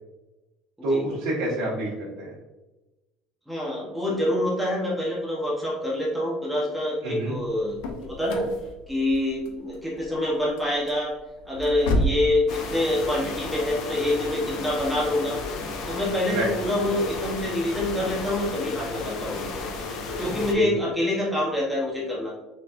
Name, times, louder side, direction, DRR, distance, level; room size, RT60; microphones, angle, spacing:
voice 1, 0.8-2.3 7.0-7.3 16.3-16.5 20.2-20.7, right 1 dB, 55° right, -9 dB, 1.3 m, -28 dB
voice 2, 3.5-8.5 8.9-11.1 11.4-15.4 15.9-19.7 20.2-22.4, left 1 dB, 5° right, -5 dB, 0.8 m, -26 dB
sound 1, 7.3-12.3, equal, 80° left, 0.7 m, -31 dB
sound 2, 12.5-20.5, left 3 dB, 45° left, 0.5 m, -33 dB
4.3 x 4.0 x 2.4 m, 1.1 s
cardioid pair, 180°, 0 cm